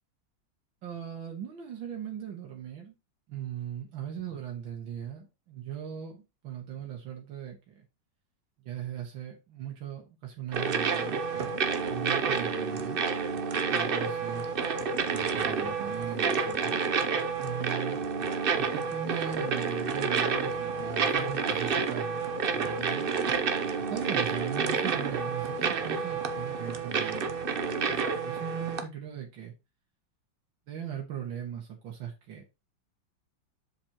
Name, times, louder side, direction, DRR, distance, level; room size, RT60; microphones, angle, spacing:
voice 1, 0.8-2.9 3.3-7.9 8.6-13.0 13.7-14.5 15.1-16.8 17.4-18.0 18.6-23.1 23.9-29.5 30.7-32.4, right 9 dB, 80° right, 2.2 m, -39 dB
sound 1, 10.5-28.8, right 5 dB, 60° right, 0.5 m, -29 dB
7.4 x 7.3 x 3.0 m
omnidirectional pair, 2.1 m